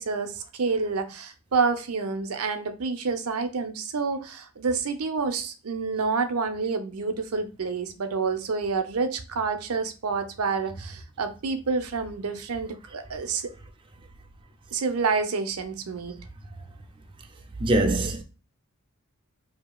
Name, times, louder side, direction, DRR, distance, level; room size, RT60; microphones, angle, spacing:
voice 1, 0.0-13.5 14.7-16.2, right 4 dB, 80° right, 0.7 m, -28 dB
voice 2, 17.6-18.2, right 2 dB, 25° right, 0.5 m, -22 dB
5.0 x 2.8 x 2.3 m
head